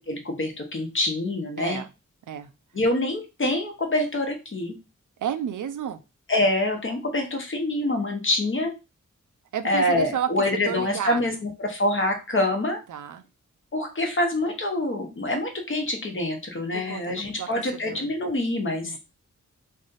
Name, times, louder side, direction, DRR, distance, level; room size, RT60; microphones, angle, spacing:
voice 1, 0.1-1.8 2.7-4.8 6.3-8.7 9.6-12.8 13.7-19.0, left 1 dB, 40° left, 3 dB, 1.0 m, -26 dB
voice 2, 5.2-6.0 9.5-11.2 12.9-13.2 16.7-17.5 17.9-18.1 18.8-19.0, right 9 dB, 90° right, 11 dB, 0.5 m, -31 dB
3.2 x 2.6 x 3.9 m, 0.28 s
wide cardioid pair, 120°, 30 cm